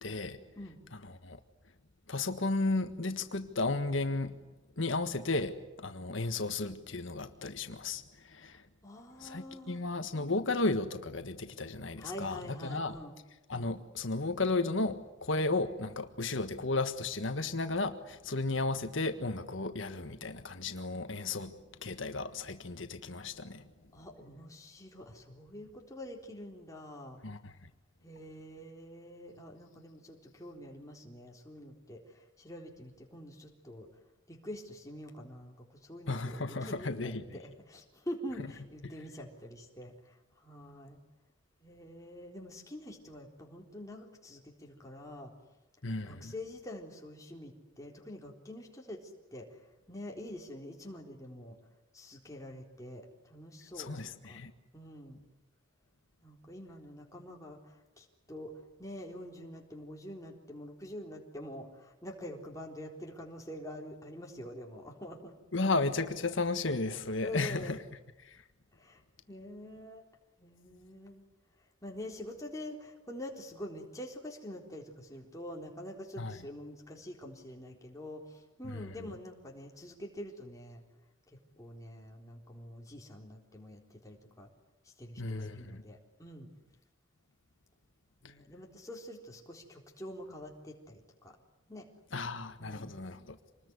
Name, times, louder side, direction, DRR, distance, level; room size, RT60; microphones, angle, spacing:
voice 1, 0.0-0.4 0.9-1.4 2.1-4.4 4.8-8.6 9.2-13.0 13.5-21.5 21.8-23.7 27.2-27.7 36.1-37.4 45.8-46.3 53.8-54.5 65.5-67.8 68.2-68.4 76.2-76.4 78.6-79.1 85.2-85.8 92.1-93.4, left 3 dB, 70° left, 1.5 m, -34 dB
voice 2, 8.8-9.8 12.0-13.2 23.9-27.2 28.0-33.9 34.3-41.0 41.6-45.3 46.0-49.6 49.9-51.6 51.9-54.4 54.7-55.2 56.2-58.5 58.8-65.4 67.2-67.9 68.7-69.0 69.3-70.0 70.4-71.3 71.8-80.8 81.6-84.5 84.9-86.5 88.2-91.4 91.7-91.9 92.6-92.9, left 1 dB, 15° left, 3.9 m, -46 dB
27.0 x 20.5 x 9.7 m
head